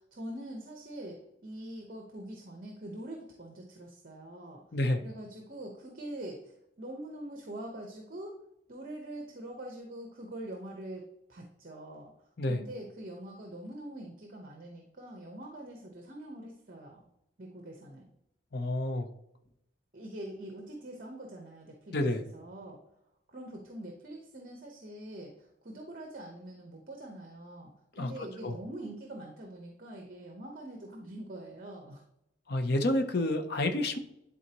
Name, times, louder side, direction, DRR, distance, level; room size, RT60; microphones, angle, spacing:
voice 1, 0.0-4.6 5.0-6.5 6.8-8.4 8.7-12.1 12.5-17.1 17.4-18.1 19.9-22.8 23.3-32.0, right 1 dB, 45° right, 1 dB, 1.0 m, -44 dB
voice 2, 4.7-5.0 12.4-12.6 18.5-19.1 21.9-22.2 27.9-28.1 28.4-28.6 32.5-34.0, left 1 dB, 55° left, 6 dB, 0.7 m, -29 dB
11.0 x 4.1 x 2.9 m, 0.80 s
head